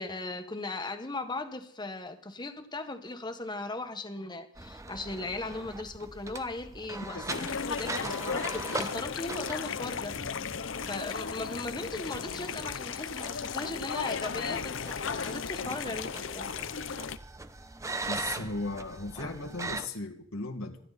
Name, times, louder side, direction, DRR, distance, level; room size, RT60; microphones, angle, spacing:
voice 1, 0.0-10.1 10.8-16.5 19.2-19.3, left 2 dB, 20° left, 7 dB, 1.5 m, -38 dB
sound 1, 4.5-19.9, right 3 dB, 15° right, 0.8 m, -41 dB
voice 2, 7.1-7.5 15.6-15.8 18.1-20.8, left 2 dB, 85° left, 3 dB, 2.1 m, -37 dB
sound 2, 7.3-17.2, left 6 dB, 60° left, 0.7 m, -35 dB
27.0 x 11.0 x 4.2 m, 0.63 s
head